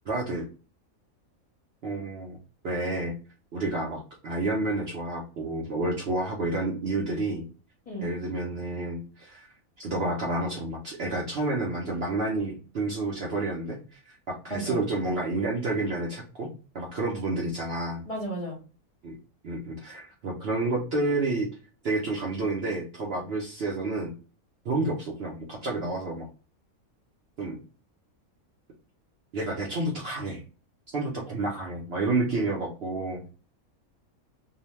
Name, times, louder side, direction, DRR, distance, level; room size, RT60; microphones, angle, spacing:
voice 1, 0.1-0.5 1.8-2.4 2.6-3.1 3.5-7.4 8.0-9.5 9.8-16.5 16.7-18.0 19.0-19.2 19.4-21.5 21.8-24.1 24.6-26.3 27.4-27.6 29.3-30.4 30.9-33.2, right 2 dB, 60° right, -2 dB, 0.7 m, -30 dB
voice 2, 14.5-14.8 18.1-18.6, right 1 dB, 30° left, -3 dB, 0.8 m, -34 dB
2.7 x 2.1 x 3.0 m, 0.37 s
omnidirectional pair, 1.5 m